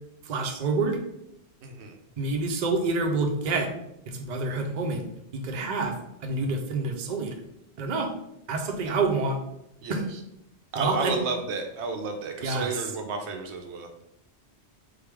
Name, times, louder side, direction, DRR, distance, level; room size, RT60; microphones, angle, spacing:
voice 1, 0.3-1.0 2.2-3.7 4.1-5.0 5.3-5.9 6.2-7.3 7.8-8.1 8.5-9.4 9.9-10.0 10.8-11.2 12.4-12.8, right 3 dB, 50° right, 3 dB, 0.6 m, -27 dB
voice 2, 1.6-2.0 9.8-10.2 10.7-13.9, right 4 dB, 80° right, 4 dB, 0.9 m, -32 dB
3.8 x 3.4 x 3.4 m, 0.81 s
omnidirectional pair, 1.2 m